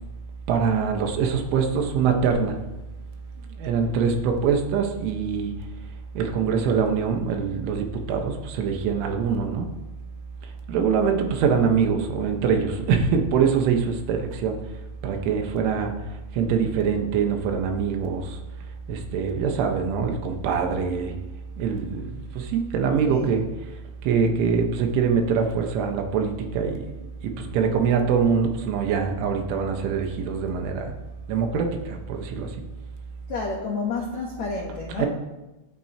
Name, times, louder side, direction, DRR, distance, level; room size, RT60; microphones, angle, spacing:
voice 1, 0.5-2.6 3.6-5.5 6.2-9.7 10.7-14.6 15.0-15.9 16.4-18.4 18.9-21.2 21.6-23.4 24.0-26.9 27.2-30.9 31.3-32.5 35.0-35.1, right 6 dB, 90° right, 3 dB, 3.8 m, -24 dB
voice 2, 33.3-35.1, left 4 dB, 75° left, -1 dB, 1.6 m, -30 dB
24.5 x 9.3 x 3.0 m, 1.1 s
omnidirectional pair, 5.4 m